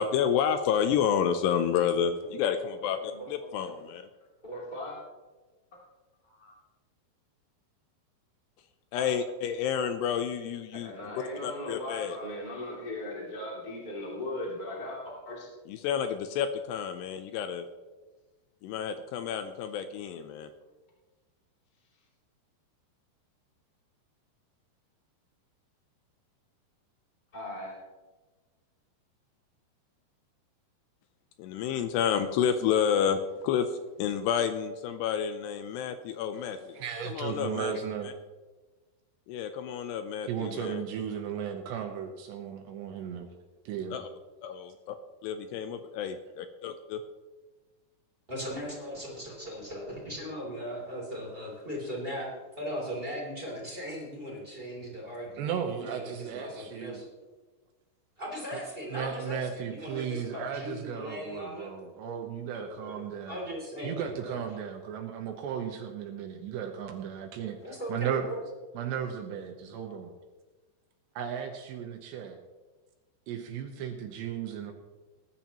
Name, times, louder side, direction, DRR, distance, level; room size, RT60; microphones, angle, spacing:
voice 1, 0.0-4.1 8.9-10.9 11.4-12.2 15.7-17.7 18.6-20.5 31.4-33.7 34.0-37.7 39.3-40.8 43.9-44.1 44.4-45.0 45.2-47.0, left 8 dB, 80° left, 9 dB, 2.5 m, -30 dB
voice 2, 3.1-3.8 4.4-5.0 5.7-5.8 6.2-6.5 8.9-9.1 10.7-15.5 27.3-27.8, left 1 dB, 15° left, -4 dB, 1.6 m, -39 dB
voice 3, 36.7-38.1 40.3-43.3 43.7-44.0 55.4-57.0 58.5-58.6 58.9-63.5 63.8-68.2 68.7-70.1 71.2-72.4 73.3-74.7, right 8 dB, 75° right, 4 dB, 3.0 m, -35 dB
voice 4, 48.3-52.3 52.6-57.1 58.2-61.7 62.5-63.0 63.3-64.4 67.6-68.4, equal, 15° right, -4 dB, 2.2 m, -38 dB
20.0 x 10.5 x 3.0 m, 1.2 s
omnidirectional pair, 5.3 m